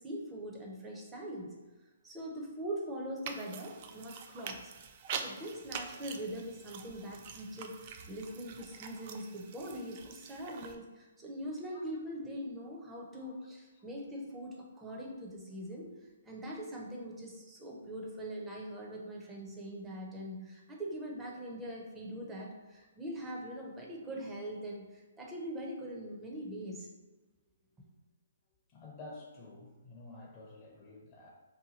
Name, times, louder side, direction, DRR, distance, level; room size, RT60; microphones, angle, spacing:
voice 1, 0.0-1.5 2.0-4.7 5.2-15.9 16.2-26.9, equal, 10° right, -2 dB, 0.6 m, -42 dB
sound 1, 3.2-10.7, right 6 dB, 45° right, 0.3 m, -45 dB
voice 2, 12.9-13.3 13.8-13.9 28.7-31.3, left 2 dB, 30° left, -2 dB, 0.6 m, -51 dB
2.8 x 2.2 x 4.0 m, 1.2 s
hypercardioid pair, 140°, 0 cm